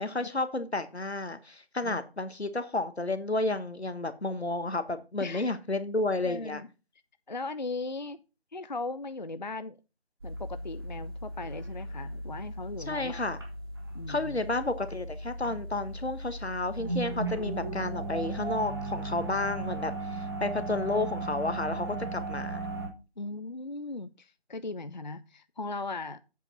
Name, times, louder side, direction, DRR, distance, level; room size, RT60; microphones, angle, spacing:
voice 1, 0.0-6.6 12.9-13.4 14.1-22.6, left 2 dB, 85° left, 1.3 m, -31 dB
voice 2, 6.2-6.7 7.3-8.2 8.5-9.8 10.2-13.3 13.9-14.3 23.2-26.2, left 3 dB, 45° left, 0.4 m, -38 dB
sound 1, 10.2-22.9, right 2 dB, 25° right, 1.5 m, -36 dB
8.0 x 5.1 x 5.4 m
figure-of-eight pair, 160°, 32 cm